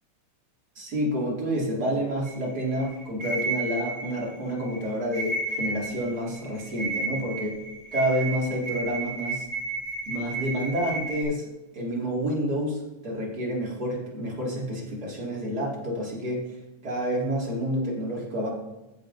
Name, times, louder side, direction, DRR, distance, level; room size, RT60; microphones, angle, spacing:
voice 1, 0.8-7.6 7.9-9.5 10.1-11.4 11.7-16.5 16.8-18.5, equal, 35° right, -3 dB, 2.4 m, -29 dB
sound 1, 2.2-11.2, right 3 dB, 10° right, 3.1 m, -33 dB
14.0 x 7.6 x 2.6 m, 1.0 s
omnidirectional pair, 3.6 m